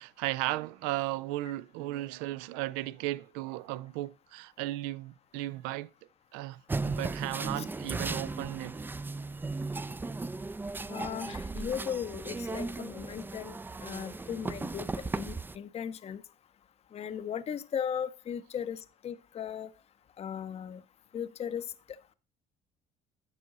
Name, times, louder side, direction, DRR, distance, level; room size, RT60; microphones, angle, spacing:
voice 1, 0.0-5.9 6.3-8.8 11.3-11.4, right 17 dB, 80° right, 0.4 m, -35 dB
sound 1, 6.7-15.6, right 3 dB, 10° right, 0.3 m, -36 dB
voice 2, 10.9-16.2 16.9-19.7 20.2-20.8 21.1-21.7, left 8 dB, 40° left, 0.6 m, -37 dB
9.8 x 6.1 x 3.9 m
supercardioid pair, 70°, 16 cm